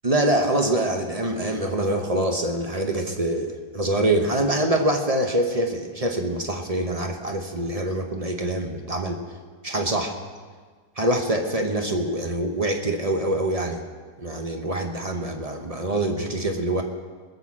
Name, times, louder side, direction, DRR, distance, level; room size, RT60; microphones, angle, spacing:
voice 1, 0.0-9.2 9.6-10.2 11.0-13.8 14.2-16.8, right 1 dB, 25° right, 4 dB, 1.0 m, -25 dB
20.0 x 6.8 x 7.4 m, 1.5 s
omnidirectional pair, 1.8 m